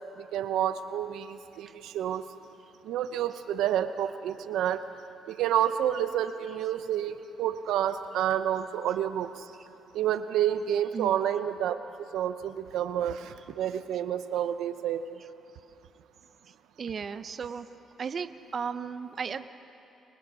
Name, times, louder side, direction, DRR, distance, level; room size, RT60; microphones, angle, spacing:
voice 1, 0.2-2.2 2.8-4.8 5.3-9.5 9.9-15.2, right 10 dB, 85° right, 10 dB, 0.9 m, -29 dB
voice 2, 16.5-17.7 18.0-19.5, right 6 dB, 45° right, 11 dB, 0.8 m, -35 dB
29.5 x 24.5 x 6.4 m, 2.9 s
cardioid pair, 90°, 0 cm